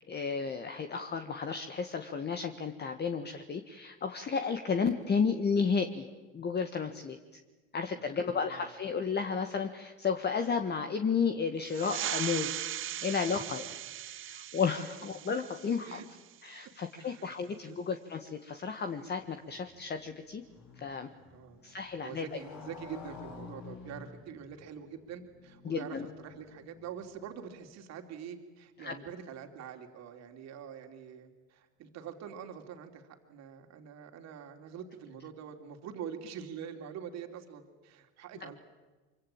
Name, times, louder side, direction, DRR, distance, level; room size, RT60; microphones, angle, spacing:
voice 1, 0.1-6.1 6.3-7.2 7.7-12.7 13.0-13.6 14.1-16.0 16.4-20.4 20.8-21.1 21.6-22.2 25.6-26.1 28.8-29.0, left 5 dB, 35° left, 7 dB, 1.8 m, -32 dB
voice 2, 7.9-8.7 13.3-13.4 15.8-16.1 16.9-17.3 17.7-17.8 21.3-21.6 22.0-38.5, right 8 dB, 60° right, 5 dB, 3.1 m, -45 dB
sound 1, 11.6-16.8, right 11 dB, 40° right, 0.9 m, -39 dB
Motorcycle, 19.2-27.3, left 5 dB, 65° left, 7.9 m, -51 dB
24.5 x 24.5 x 8.9 m, 1.3 s
supercardioid pair, 85°, 31 cm